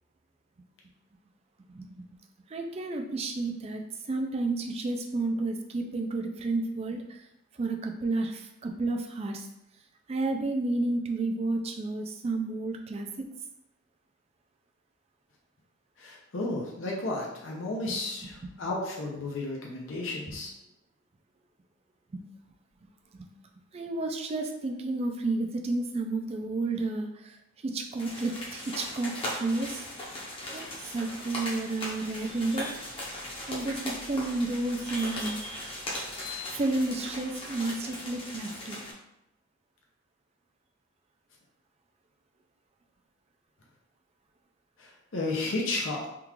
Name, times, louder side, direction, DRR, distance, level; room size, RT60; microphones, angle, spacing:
voice 1, 2.5-3.8 4.1-7.2 7.5-9.5 10.1-13.3 17.9-18.5 22.1-22.2 23.1-23.3 23.7-27.4 27.6-29.9 30.5-32.7 33.5-35.4 36.5-38.8, right 2 dB, 30° right, 3 dB, 0.3 m, -31 dB
voice 2, 16.0-20.5 44.8-46.1, left 2 dB, 70° left, -2 dB, 0.6 m, -33 dB
sound 1, 28.0-38.9, left 1 dB, 25° left, 0.7 m, -38 dB
3.6 x 2.4 x 3.0 m, 0.84 s
head